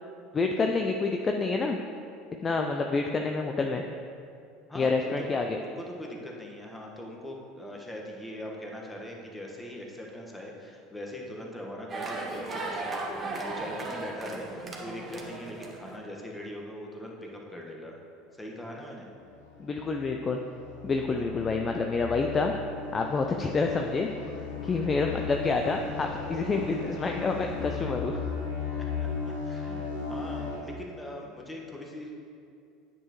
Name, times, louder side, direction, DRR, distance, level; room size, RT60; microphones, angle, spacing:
voice 1, 0.3-1.8 2.4-3.8 4.7-5.6 19.6-20.4 20.8-22.5 22.9-24.1 24.6-28.2, left 4 dB, 30° left, 3 dB, 0.5 m, -28 dB
voice 2, 4.7-18.0 18.3-19.1 21.0-21.5 28.7-32.2, left 1 dB, 10° left, -1 dB, 1.4 m, -41 dB
sound 1, 11.9-16.0, right 3 dB, 30° right, 1.2 m, -36 dB
sound 2, 19.2-30.6, left 5 dB, 85° left, 1.3 m, -36 dB
9.6 x 6.9 x 3.1 m, 2.4 s
hypercardioid pair, 75°, 0 cm